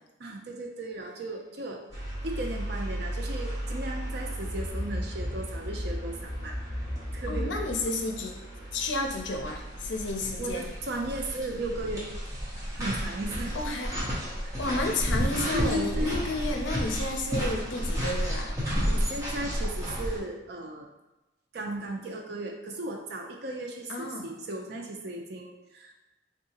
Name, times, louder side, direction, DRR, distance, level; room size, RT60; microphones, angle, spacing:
voice 1, 0.2-1.9 2.2-6.8 7.1-7.6 10.4-12.1 12.7-13.5 14.4-14.5 15.5-16.2 18.9-20.9 21.5-25.9, right 2 dB, 60° right, 2 dB, 0.5 m, -36 dB
sound 1, 1.9-20.2, equal, 20° right, 0.9 m, -32 dB
voice 2, 7.3-8.4 8.7-10.7 13.5-13.9 14.6-18.6 23.9-24.3, left 2 dB, 70° left, 3 dB, 0.5 m, -31 dB
3.6 x 2.7 x 2.8 m, 1.0 s
head